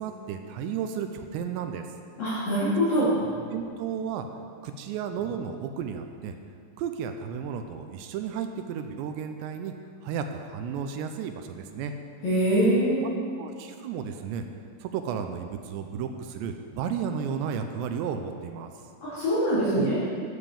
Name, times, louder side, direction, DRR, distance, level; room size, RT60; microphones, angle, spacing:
voice 1, 0.0-1.9 3.0-3.1 3.5-4.3 4.6-6.4 6.8-9.7 10.0-11.9 13.4-14.5 14.8-18.7 19.7-19.9, right 7 dB, 85° right, 6 dB, 2.5 m, -33 dB
voice 2, 2.2-3.1 12.2-13.1 19.0-20.0, equal, 50° left, -12 dB, 4.1 m, -24 dB
11.5 x 7.2 x 6.9 m, 2.2 s
omnidirectional pair, 5.6 m